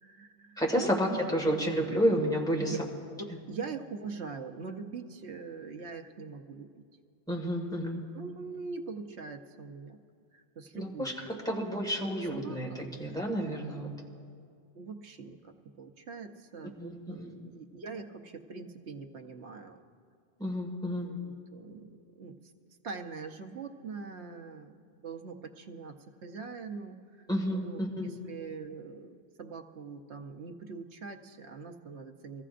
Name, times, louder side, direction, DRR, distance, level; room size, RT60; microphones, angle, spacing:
voice 1, 0.0-1.3 2.6-2.8 3.2-6.8 8.1-10.0 10.3-11.7 12.3-12.9 13.4-13.5 14.7-19.8 21.0-22.4 22.8-24.8 25.0-26.0 26.2-32.4, right 4 dB, 75° right, 5 dB, 1.2 m, -43 dB
voice 2, 0.6-2.8 7.3-8.0 10.7-11.1 11.5-13.9 16.8-17.3 20.4-21.1 27.3-28.1, equal, 5° left, -1 dB, 1.7 m, -30 dB
25.0 x 14.5 x 2.5 m, 2.2 s
omnidirectional pair, 1.2 m